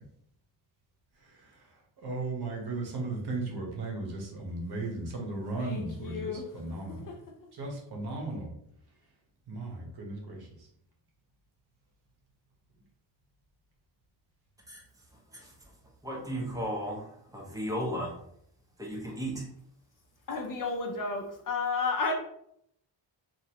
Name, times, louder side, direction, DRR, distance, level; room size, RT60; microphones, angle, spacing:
voice 1, 1.1-7.1 7.5-8.5 9.5-10.7, right 2 dB, 55° right, 1.0 m, -36 dB
voice 2, 5.6-6.5 7.1-7.2 20.3-22.1, left 4 dB, 45° left, 0.6 m, -32 dB
voice 3, 16.0-18.1 18.8-19.4, equal, 10° right, 1.0 m, -35 dB
2.9 x 2.5 x 2.9 m
cardioid pair, 100°, 45 cm